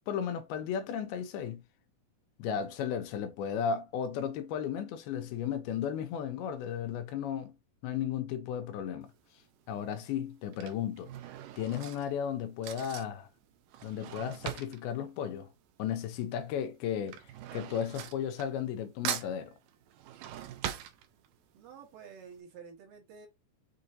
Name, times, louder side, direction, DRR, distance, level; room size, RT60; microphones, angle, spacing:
voice 1, 0.1-1.6 2.4-7.5 7.8-9.1 9.7-11.1 11.6-13.3 13.8-15.5 15.8-17.2 17.5-19.6, left 8 dB, 85° left, 2.5 m, -34 dB
Drawer open or close / Cutlery silverware, 9.0-9.4 10.3-16.2 16.4-18.8 19.0-21.6 22.0-22.1 22.3-22.4, right 11 dB, 85° right, 1.9 m, -41 dB
voice 2, 21.5-23.3, right 6 dB, 70° right, 2.6 m, -50 dB
6.6 x 2.6 x 2.6 m
omnidirectional pair, 4.5 m